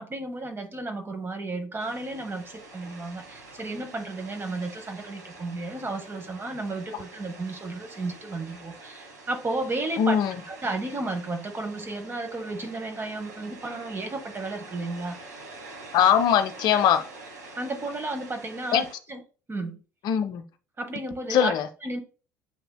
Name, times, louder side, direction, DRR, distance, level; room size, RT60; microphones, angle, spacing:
voice 1, 0.0-10.2 10.5-15.5 16.7-16.8 17.6-19.2 19.5-19.8 20.8-21.5 21.8-22.0, right 2 dB, 25° right, 1.1 m, -33 dB
sound 1, 1.8-18.9, right 3 dB, 80° right, 1.1 m, -46 dB
voice 2, 10.0-10.4 15.9-17.0 18.7-18.8 20.0-20.4 21.3-21.7, left 9 dB, 50° left, 0.5 m, -21 dB
7.1 x 3.3 x 2.2 m
figure-of-eight pair, 60°, 9 cm